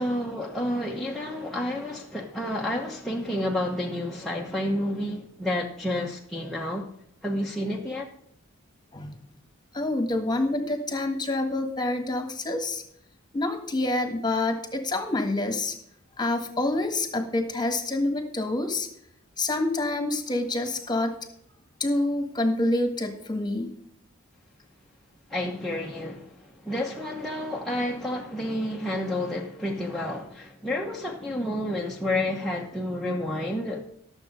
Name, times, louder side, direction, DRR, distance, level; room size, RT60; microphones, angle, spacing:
voice 1, 0.0-6.9 7.2-8.1 25.3-33.8, left 1 dB, ahead, 1.0 m, -30 dB
voice 2, 9.7-12.8 13.3-15.7 16.2-18.9 19.4-21.1 21.8-23.7, left 2 dB, 20° left, 1.6 m, -27 dB
12.0 x 7.1 x 5.3 m
head